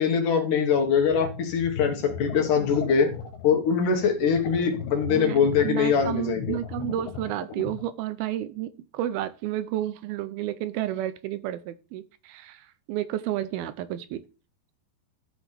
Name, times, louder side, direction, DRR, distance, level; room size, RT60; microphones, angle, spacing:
voice 1, 0.0-3.1 3.4-6.6, left 6 dB, 60° left, 4 dB, 2.8 m, -23 dB
sound 1, 0.8-7.9, left 6 dB, 85° left, 3.2 m, -37 dB
voice 2, 5.1-14.2, right 13 dB, 80° right, 14 dB, 2.4 m, -31 dB
13.5 x 6.2 x 3.4 m, 0.34 s
omnidirectional pair, 4.5 m